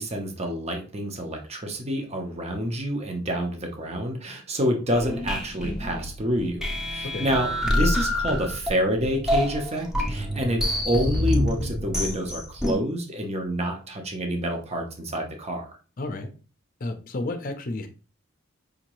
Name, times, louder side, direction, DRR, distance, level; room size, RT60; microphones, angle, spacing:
voice 1, 0.0-15.7, equal, 30° right, 0.8 m, -28 dB
sound 1, 4.9-12.7, left 1 dB, 5° right, 0.8 m, -27 dB
voice 2, 16.0-16.3 16.8-17.9, left 2 dB, 45° left, 0.6 m, -31 dB
5.1 x 2.8 x 3.0 m
head